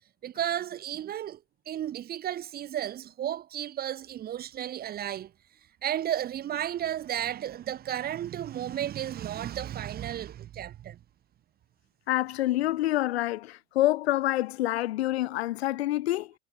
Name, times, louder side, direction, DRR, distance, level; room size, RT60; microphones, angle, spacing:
voice 1, 0.2-5.3 5.8-11.0, right 11 dB, 25° right, 1.2 m, -33 dB
voice 2, 12.1-16.3, left 15 dB, 60° left, 1.5 m, -27 dB
figure-of-eight pair, 90°, 36 cm